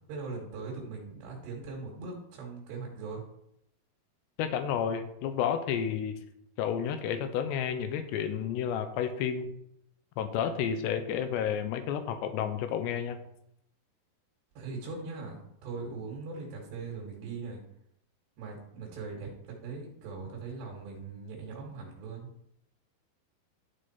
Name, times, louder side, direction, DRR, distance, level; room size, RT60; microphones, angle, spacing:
voice 1, 0.1-3.2 14.6-17.6 18.4-22.3, right 4 dB, 85° right, -2 dB, 4.0 m, -40 dB
voice 2, 4.4-6.2 6.6-9.5 10.2-13.2, left 8 dB, 90° left, 9 dB, 3.0 m, -31 dB
13.0 x 4.8 x 4.3 m, 0.77 s
omnidirectional pair, 4.8 m